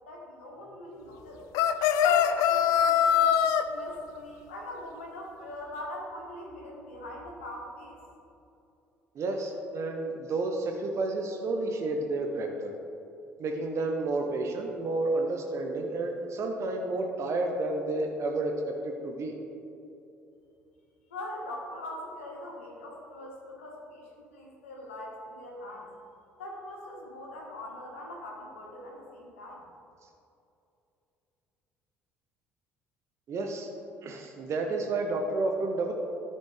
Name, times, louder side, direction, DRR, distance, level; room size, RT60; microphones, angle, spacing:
voice 1, 0.1-1.5 2.0-3.1 3.7-8.0 21.1-25.9 26.4-29.6, left 1 dB, 75° left, -1 dB, 1.5 m, -42 dB
sound 1, 1.5-3.6, left 9 dB, 60° left, 0.4 m, -22 dB
voice 2, 9.1-12.7 13.4-19.3 33.3-33.7 34.0-35.9, right 2 dB, 45° right, 2 dB, 0.8 m, -31 dB
12.5 x 4.3 x 3.3 m, 2.7 s
figure-of-eight pair, 55°, 7 cm